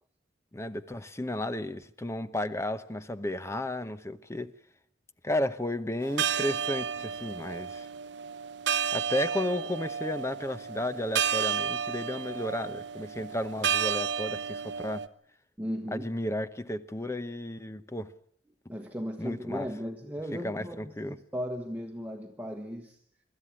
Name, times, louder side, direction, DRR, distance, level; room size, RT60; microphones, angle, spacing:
voice 1, 0.5-4.5 5.2-7.9 8.9-15.0 15.9-18.1 19.2-19.7 20.4-21.2, left 1 dB, 15° left, 0.8 m, -33 dB
sound 1, 6.0-15.1, right 7 dB, 75° right, 0.9 m, -32 dB
voice 2, 15.6-16.1 18.7-23.0, equal, 10° right, 1.2 m, -36 dB
24.5 x 13.5 x 9.8 m
head